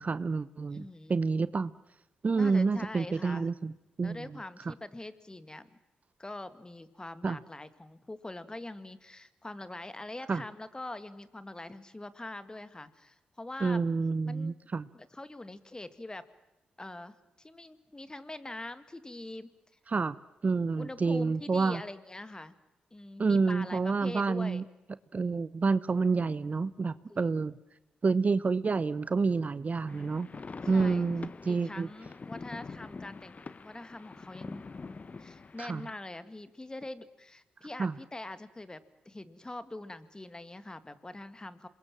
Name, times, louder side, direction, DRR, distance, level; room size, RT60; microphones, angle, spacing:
voice 1, 0.0-1.7 2.2-3.7 4.0-4.2 4.7-4.8 7.2-7.4 10.3-10.4 13.6-14.9 19.9-20.2 20.4-21.8 23.2-24.6 25.1-27.5 28.0-30.3 30.7-31.9 35.6-35.8 37.8-37.9, right 4 dB, 45° right, 17 dB, 0.8 m, -28 dB
voice 2, 0.7-1.2 2.3-3.5 4.0-5.8 6.2-13.8 14.3-14.6 14.9-16.2 16.8-19.5 20.8-22.5 22.9-24.6 27.1-27.4 30.7-31.1 31.5-34.7 35.2-38.8 39.1-41.7, left 2 dB, 20° left, 13 dB, 1.9 m, -43 dB
sound 1, 29.9-36.0, left 4 dB, 40° left, 1.0 m, -44 dB
27.0 x 21.5 x 7.5 m, 0.94 s
supercardioid pair, 45°, 4 cm